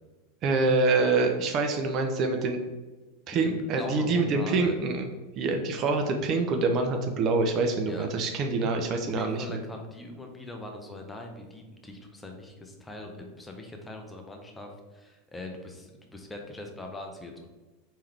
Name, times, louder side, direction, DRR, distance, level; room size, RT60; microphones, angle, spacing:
voice 1, 0.4-2.6 3.3-5.1 5.4-9.6, right 3 dB, 40° right, 4 dB, 0.5 m, -26 dB
voice 2, 3.3-4.8 7.9-8.1 9.1-17.5, left 2 dB, 10° left, 3 dB, 0.8 m, -41 dB
4.4 x 3.6 x 3.3 m, 1.2 s
figure-of-eight pair, 85°, 0 cm